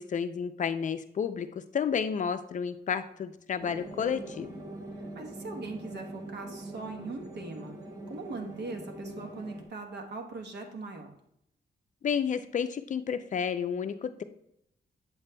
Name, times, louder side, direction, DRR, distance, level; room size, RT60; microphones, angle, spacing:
voice 1, 0.0-4.6 12.0-14.2, left 7 dB, 45° left, 9 dB, 0.4 m, -31 dB
sound 1, 3.6-9.7, right 1 dB, 20° right, 0.9 m, -43 dB
voice 2, 5.0-7.8 8.1-11.1, right 3 dB, 80° right, 4 dB, 1.1 m, -40 dB
7.9 x 7.5 x 2.2 m, 0.75 s
wide cardioid pair, 155°, 18 cm